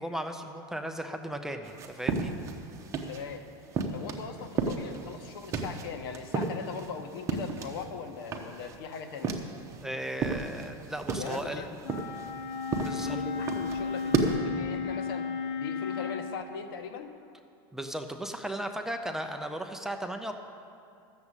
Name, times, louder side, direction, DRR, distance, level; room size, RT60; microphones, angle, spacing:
voice 1, 0.0-2.3 9.8-11.6 12.8-13.2 17.7-20.3, right 1 dB, 5° right, 5 dB, 0.5 m, -36 dB
sound 1, 1.6-3.3 3.7-7.9 8.2-9.9 10.1-14.4, right 4 dB, 25° right, 1.0 m, -33 dB
voice 2, 3.1-3.4 3.9-9.4 11.2-11.7 12.9-15.3 15.6-17.1, left 6 dB, 80° left, 6 dB, 1.3 m, -39 dB
Wind instrument woodwind instrument, 11.8-16.3, left 5 dB, 45° left, 1.0 m, -34 dB
13.0 x 7.2 x 8.1 m, 2.6 s
supercardioid pair, 155°, 12 cm